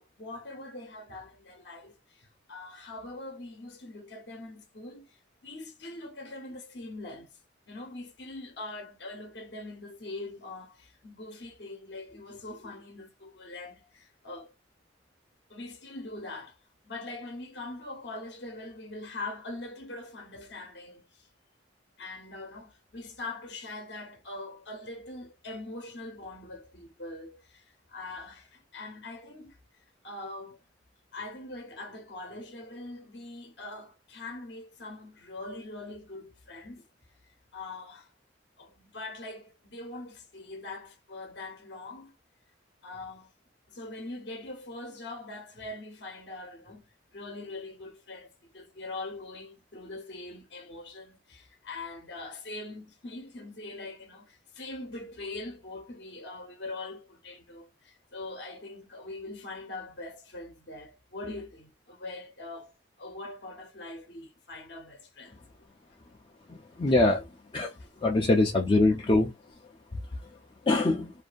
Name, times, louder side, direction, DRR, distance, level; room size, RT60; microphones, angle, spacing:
voice 1, 0.0-7.4 7.7-14.5 15.5-16.6 16.8-21.3 22.0-29.6 30.0-30.7 31.1-36.9 37.2-38.1 38.6-42.1 42.8-43.3 43.7-65.4 66.8-67.0 67.8-68.5, left 2 dB, 60° left, 0.7 m, -42 dB
voice 2, 66.5-67.2 67.5-67.7 68.0-69.3 70.7-71.1, left 2 dB, 25° left, 0.4 m, -23 dB
2.6 x 2.5 x 2.2 m
head